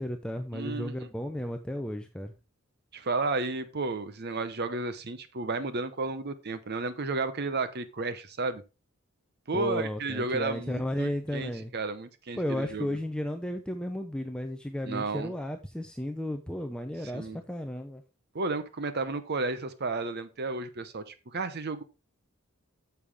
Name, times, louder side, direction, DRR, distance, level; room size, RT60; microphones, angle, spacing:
voice 1, 0.0-2.3 9.5-11.7 12.4-18.0, left 1 dB, 5° left, 5 dB, 0.6 m, -34 dB
voice 2, 0.5-1.1 2.9-8.6 9.5-13.0 14.8-15.3 17.1-17.4 18.3-21.8, right 3 dB, 45° right, 12 dB, 0.8 m, -32 dB
8.7 x 7.0 x 3.5 m, 0.29 s
head